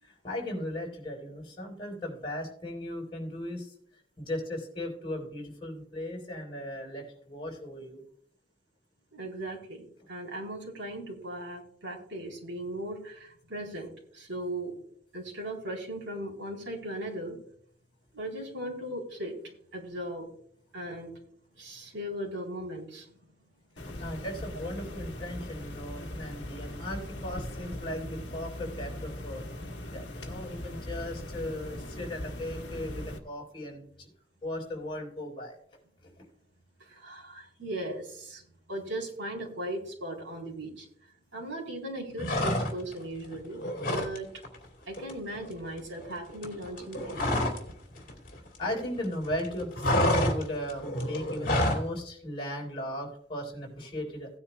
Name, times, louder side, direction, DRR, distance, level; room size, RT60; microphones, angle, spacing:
voice 1, 0.0-8.0 23.9-29.5 29.9-34.1 34.4-35.6 36.0-36.3 48.6-54.4, left 1 dB, 25° left, -3 dB, 4.1 m, -37 dB
voice 2, 9.1-14.7 15.1-17.4 18.1-20.3 20.7-21.1 21.6-23.1 36.8-38.4 38.7-40.9 41.3-43.6 43.9-44.3 44.9-47.3, right 1 dB, 80° right, 0 dB, 3.9 m, -38 dB
sound 1, 23.8-33.2, left 1 dB, 65° left, 1.5 m, -40 dB
sound 2, 42.2-43.0 43.3-44.2 44.4-44.7 44.9-47.7 48.0-49.1 49.3-51.9, left 1 dB, 45° left, 2.7 m, -28 dB
17.5 x 9.7 x 2.3 m, 0.62 s
head